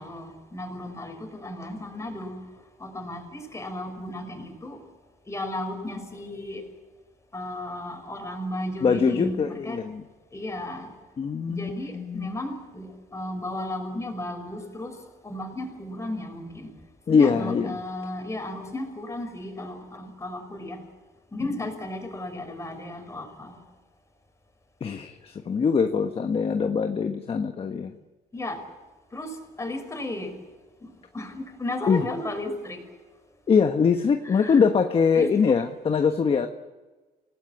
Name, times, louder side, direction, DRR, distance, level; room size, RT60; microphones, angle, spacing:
voice 1, 0.0-2.4 2.8-4.8 5.3-6.6 7.3-9.8 10.3-10.9 11.5-14.9 15.2-16.7 17.1-20.8 21.3-23.6 28.3-28.6 29.1-30.3 30.8-32.8 34.2-34.6 35.1-35.6, left 1 dB, 15° left, 5 dB, 5.5 m, -34 dB
voice 2, 8.8-10.0 11.2-12.3 17.1-17.7 24.8-27.9 31.9-32.0 33.5-36.5, left 6 dB, 35° left, 7 dB, 1.3 m, -23 dB
27.0 x 18.5 x 8.7 m, 1.2 s
cardioid pair, 110°, 17 cm